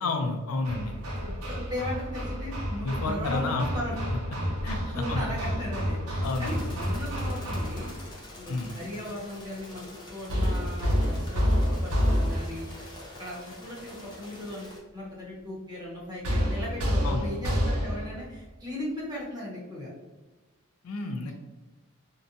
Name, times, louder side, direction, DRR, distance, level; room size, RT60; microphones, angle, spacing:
voice 1, 0.0-1.0 2.8-3.7 4.6-5.3 6.2-6.6 8.5-8.7 17.0-17.3 20.8-21.3, left 3 dB, 75° left, 5 dB, 0.4 m, -30 dB
Hammer, 0.6-8.1 10.3-12.7 16.2-18.2, equal, 80° right, 0.6 m, -29 dB
voice 2, 1.2-4.0 4.7-7.9 8.3-12.9 13.2-19.9, left 1 dB, 20° right, -5 dB, 0.8 m, -37 dB
sound 1, 6.2-14.8, left 1 dB, 20° left, 0.6 m, -46 dB
2.6 x 2.2 x 2.6 m, 1.2 s
head